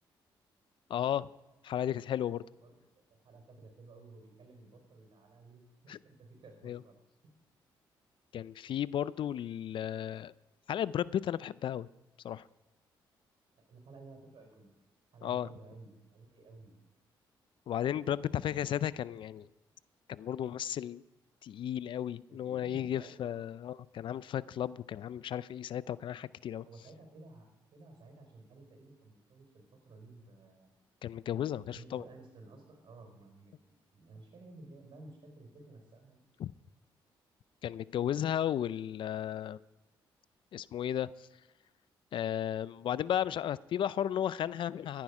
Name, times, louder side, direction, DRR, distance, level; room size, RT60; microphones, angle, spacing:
voice 1, 0.9-1.3 1.6-2.4 5.9-6.0 6.6-6.8 8.3-10.3 10.7-11.9 12.2-12.4 15.2-15.5 17.7-19.5 20.1-21.0 21.4-26.7 31.0-32.0 36.4-36.5 37.6-39.6 40.5-41.3 42.1-45.0, left 10 dB, 65° left, 19 dB, 0.4 m, -34 dB
voice 2, 3.1-6.9 13.5-14.7 15.1-16.8 18.2-18.8 22.3-23.6 26.6-30.7 31.6-36.2, right 2 dB, 60° right, 4 dB, 4.6 m, -54 dB
14.0 x 10.5 x 4.8 m, 1.0 s
supercardioid pair, 65°, 9 cm